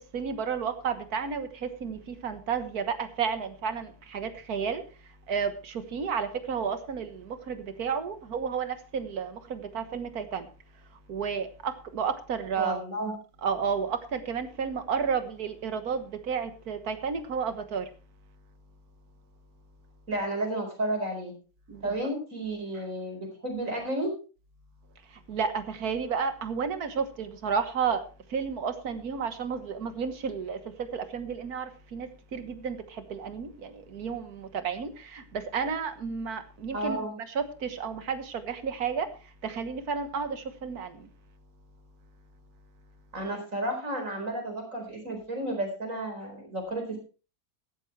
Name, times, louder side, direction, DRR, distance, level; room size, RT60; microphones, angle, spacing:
voice 1, 0.1-4.8 5.3-10.5 11.1-12.8 13.4-17.9 21.7-21.8 25.3-28.0 28.3-30.6 30.9-32.8 33.1-37.0 37.4-39.1 39.4-40.9, right 6 dB, 80° right, 10 dB, 1.8 m, -32 dB
voice 2, 12.6-13.1 20.1-21.3 21.8-24.1 36.7-37.1 43.1-47.0, right 1 dB, 60° right, 4 dB, 4.9 m, -32 dB
14.5 x 12.5 x 3.2 m, 0.34 s
omnidirectional pair, 1.6 m